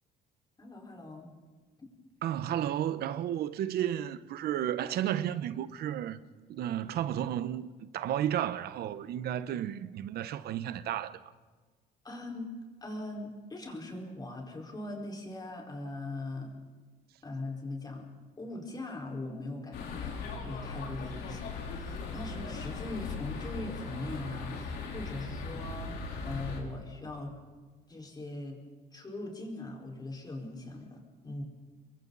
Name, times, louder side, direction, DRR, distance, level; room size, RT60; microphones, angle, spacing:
voice 1, 0.6-1.3 12.0-12.5 12.8-16.5 17.2-18.1 18.4-20.1 20.4-26.0 26.2-27.4 27.9-28.6 28.9-31.4, left 2 dB, 25° left, 4.8 m, -40 dB
voice 2, 2.2-6.2 6.5-11.2, right 11 dB, 70° right, 1.0 m, -33 dB
sound 1, 19.7-26.6, left 4 dB, 75° left, 3.8 m, -39 dB
29.0 x 22.5 x 4.1 m
cardioid pair, 110°, 17 cm